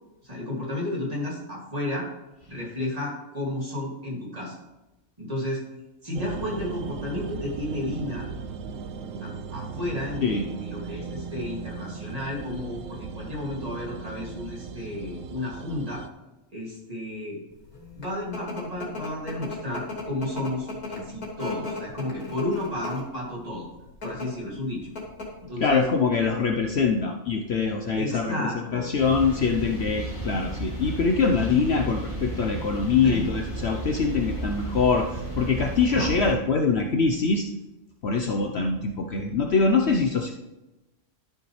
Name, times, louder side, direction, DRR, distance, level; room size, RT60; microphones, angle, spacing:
voice 1, 0.2-2.1 2.5-4.6 5.2-5.6 6.0-8.3 9.2-16.0 16.5-17.4 18.0-23.7 24.0-24.8 25.4-25.8 28.0-28.9 33.0-33.3 35.9-36.1, left 1 dB, 25° right, -3 dB, 2.5 m, -32 dB
sound 1, 6.1-16.1, right 5 dB, 70° right, 1.0 m, -37 dB
sound 2, 17.7-23.2 23.9-24.3 24.6-24.7 25.0-25.4, left 3 dB, 85° left, 3.0 m, -35 dB
voice 2, 25.6-37.4 38.0-40.3, left 4 dB, 55° left, 3 dB, 0.9 m, -24 dB
sound 3, 29.0-36.3, right 1 dB, 20° left, 2.7 m, -34 dB
12.5 x 6.7 x 3.2 m, 1.0 s
omnidirectional pair, 1.5 m